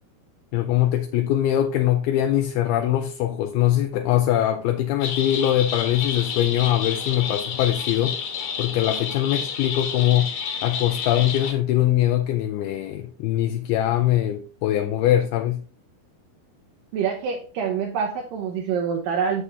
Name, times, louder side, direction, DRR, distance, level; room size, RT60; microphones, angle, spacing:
voice 1, 0.5-8.2 8.6-10.3 10.6-15.6, left 12 dB, 80° left, 2.4 m, -22 dB
sound 1, 5.0-11.5, left 6 dB, 55° left, 2.6 m, -30 dB
voice 2, 16.9-19.4, right 6 dB, 70° right, 2.2 m, -26 dB
7.2 x 7.1 x 3.4 m
omnidirectional pair, 4.7 m